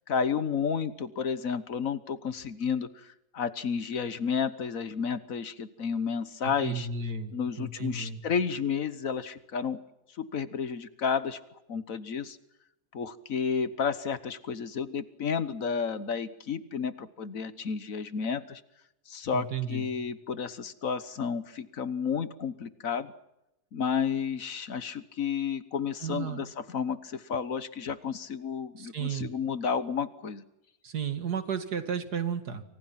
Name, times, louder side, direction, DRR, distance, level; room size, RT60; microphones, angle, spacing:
voice 1, 0.1-6.9 7.3-9.8 10.2-11.4 11.7-12.4 12.9-18.6 19.1-23.1 23.7-30.4, left 6 dB, 60° left, 14 dB, 1.5 m, -31 dB
voice 2, 6.6-8.2 19.3-19.9 26.0-26.5 28.8-29.3 30.8-32.6, right 6 dB, 80° right, 9 dB, 2.6 m, -33 dB
29.0 x 25.0 x 5.9 m, 0.90 s
omnidirectional pair, 1.7 m